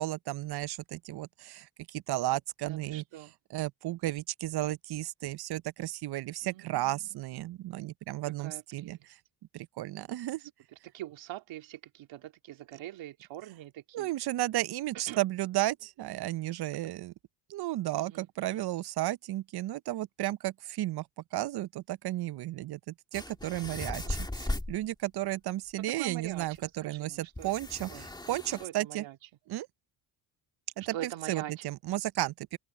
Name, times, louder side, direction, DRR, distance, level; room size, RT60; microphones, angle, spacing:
voice 1, 0.0-3.0 3.5-9.0 9.5-10.4 13.9-17.1 17.5-21.1 21.3-27.9 28.3-29.0 29.5-29.7 30.9-31.0 31.3-32.6, right 15 dB, 55° right, 0.7 m, -33 dB
voice 2, 2.6-3.3 6.4-7.2 8.2-9.1 10.4-14.1 15.1-15.2 18.0-18.7 23.5-24.3 25.8-27.5 27.9-28.1 28.6-29.3 30.8-31.7, right 13 dB, 75° right, 2.6 m, -44 dB
sound 1, 23.1-24.8 26.2-26.3 26.6-26.7 27.4-28.7, left 1 dB, 10° left, 2.0 m, -37 dB
supercardioid pair, 75°, 46 cm